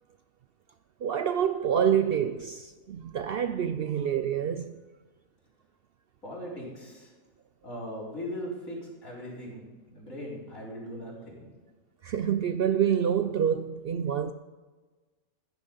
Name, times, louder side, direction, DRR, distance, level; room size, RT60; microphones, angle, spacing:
voice 1, 1.0-4.8 12.0-14.3, right 8 dB, 65° right, 0.6 m, -27 dB
voice 2, 6.2-7.1 7.6-11.5, equal, 80° left, 4.5 m, -39 dB
14.5 x 10.0 x 5.4 m
omnidirectional pair, 1.4 m